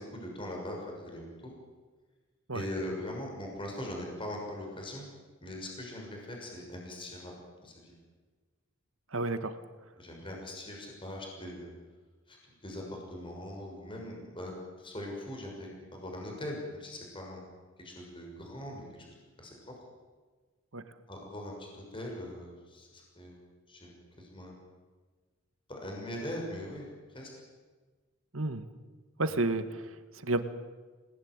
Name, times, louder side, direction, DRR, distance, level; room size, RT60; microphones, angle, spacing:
voice 1, 0.0-1.5 2.5-5.1 5.4-7.3 7.6-7.9 10.0-11.7 12.3-17.4 17.8-19.1 19.4-19.5 21.1-23.4 23.7-24.6 25.7-27.3 29.3-29.4, left 1 dB, 25° left, 0 dB, 6.4 m, -41 dB
voice 2, 9.1-9.6 20.7-20.8 28.3-28.6 29.2-30.4, right 2 dB, 70° right, 10 dB, 1.9 m, -31 dB
28.0 x 20.5 x 9.8 m, 1.4 s
head